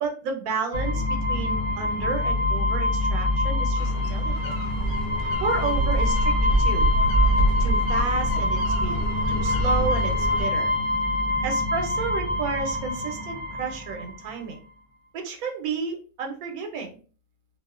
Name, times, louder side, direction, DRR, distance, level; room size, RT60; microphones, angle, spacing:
voice 1, 0.0-4.6 5.4-6.9 7.6-9.0 9.3-10.7 11.4-14.6 15.1-17.0, right 5 dB, 85° right, 4 dB, 1.1 m, -32 dB
sound 1, 0.7-14.1, left 2 dB, 55° right, 0.5 m, -25 dB
sound 2, 3.8-10.4, right 1 dB, 65° left, 0.6 m, -27 dB
2.6 x 2.1 x 2.3 m, 0.37 s
omnidirectional pair, 1.5 m